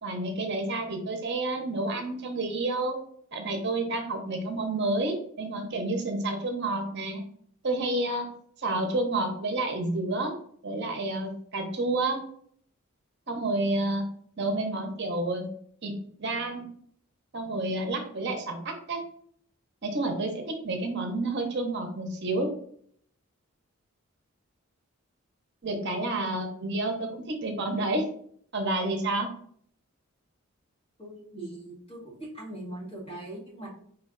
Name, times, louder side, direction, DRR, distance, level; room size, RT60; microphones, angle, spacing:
voice 1, 0.0-2.9 3.3-7.2 7.6-8.3 8.6-10.3 10.6-12.2 13.3-14.0 14.4-15.4 15.8-16.7 17.3-19.0 19.8-22.5 25.6-28.0 28.5-29.3, right 2 dB, 50° right, 4 dB, 0.7 m, -29 dB
voice 2, 31.0-33.7, right 1 dB, 25° left, -4 dB, 1.9 m, -41 dB
4.5 x 3.1 x 3.7 m, 0.62 s
head